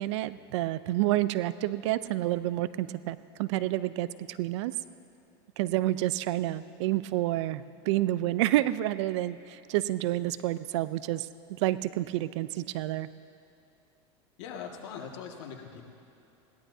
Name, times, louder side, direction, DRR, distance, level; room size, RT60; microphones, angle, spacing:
voice 1, 0.0-4.7 5.6-13.1, right 15 dB, 75° right, 15 dB, 0.5 m, -29 dB
voice 2, 14.4-15.8, left 7 dB, 75° left, 1 dB, 1.9 m, -41 dB
21.0 x 17.0 x 2.8 m, 2.8 s
supercardioid pair, 110°, 15 cm